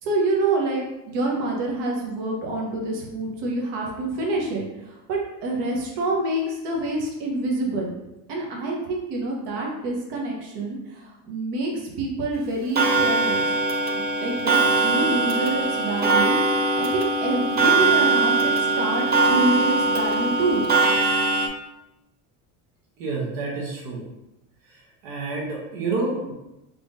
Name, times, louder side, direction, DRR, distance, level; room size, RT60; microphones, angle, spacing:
voice 1, 0.0-7.9 8.3-13.4 13.9-20.7, right 2 dB, 60° right, -1 dB, 1.1 m, -27 dB
Clock, 12.8-21.5, right 3 dB, 25° right, 0.4 m, -21 dB
voice 2, 23.0-24.1 24.7-26.3, right 3 dB, 90° right, -3 dB, 1.0 m, -29 dB
3.5 x 3.3 x 2.6 m, 0.95 s
supercardioid pair, 105°, 45 cm